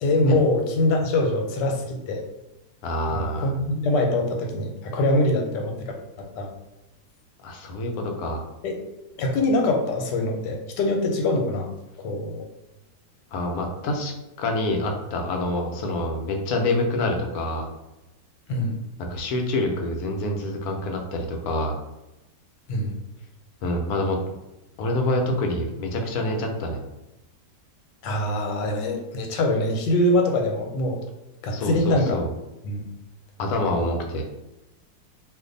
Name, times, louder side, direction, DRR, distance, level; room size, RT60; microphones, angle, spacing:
voice 1, 0.0-2.2 3.1-5.7 6.2-6.5 8.6-8.9 9.2-11.7 12.0-12.4 18.5-18.7 22.7-22.9 28.0-31.0 31.4-32.2 32.6-32.8, left 1 dB, 90° left, 2 dB, 1.3 m, -23 dB
voice 2, 2.8-3.5 7.4-8.4 13.3-14.1 14.4-17.7 19.1-21.7 23.6-24.2 24.8-26.8 31.5-32.3 33.4-34.2, left 1 dB, 70° left, 2 dB, 1.0 m, -26 dB
2.5 x 2.5 x 3.7 m, 0.95 s
omnidirectional pair, 1.9 m